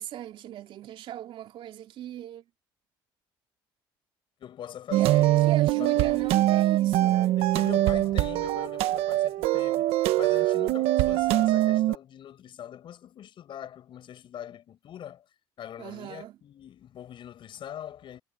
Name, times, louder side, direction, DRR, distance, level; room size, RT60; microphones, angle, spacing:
voice 1, 0.0-2.4 5.0-7.4 15.8-16.4, right 12 dB, 65° right, 3.2 m, -38 dB
voice 2, 4.4-5.4 5.8-6.6 7.1-15.3 15.6-18.2, left 10 dB, 55° left, 7.5 m, -42 dB
sound 1, 4.9-12.0, right 15 dB, 80° right, 1.4 m, -23 dB
cardioid pair, 105°, 10 cm